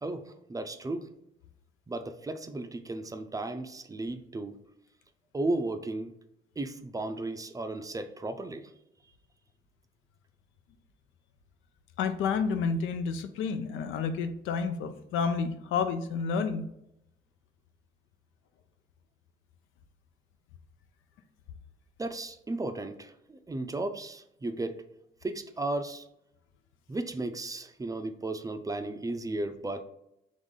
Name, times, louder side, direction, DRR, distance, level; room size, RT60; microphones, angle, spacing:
voice 1, 0.0-1.1 1.9-4.6 5.3-6.1 6.6-8.7 22.0-24.8 25.2-26.1 26.9-29.8, right 2 dB, 15° right, 8 dB, 0.4 m, -34 dB
voice 2, 12.0-16.6, left 5 dB, 90° left, 9 dB, 0.5 m, -30 dB
3.7 x 3.1 x 3.7 m, 0.82 s
cardioid pair, 90°, 20 cm